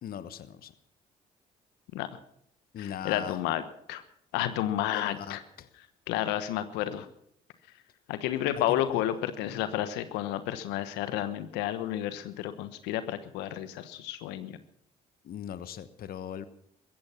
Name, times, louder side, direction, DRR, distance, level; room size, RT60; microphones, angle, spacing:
voice 1, 0.0-0.7 2.7-3.4 4.9-5.7 8.7-9.7 15.2-16.4, left 9 dB, 60° left, 13 dB, 1.1 m, -40 dB
voice 2, 2.8-3.6 3.9-4.0 4.3-5.4 6.1-7.1 8.1-14.6, left 12 dB, 80° left, 12 dB, 1.2 m, -31 dB
15.5 x 14.5 x 5.8 m, 0.69 s
supercardioid pair, 60°, 18 cm